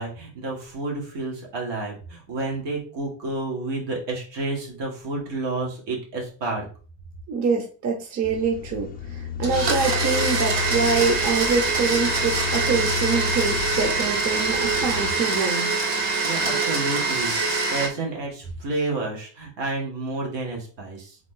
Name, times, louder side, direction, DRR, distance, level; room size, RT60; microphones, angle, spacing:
voice 1, 0.0-6.7 16.2-21.2, right 2 dB, 85° right, -1 dB, 2.0 m, -30 dB
voice 2, 7.3-15.7, right 5 dB, 40° right, 3 dB, 0.8 m, -25 dB
sound 1, 8.2-15.1, left 6 dB, 25° left, 0.4 m, -32 dB
Domestic sounds home sounds, 9.4-17.9, right 3 dB, 70° right, 1.3 m, -24 dB
3.7 x 3.4 x 3.7 m, 0.38 s
cardioid pair, 155°, 43 cm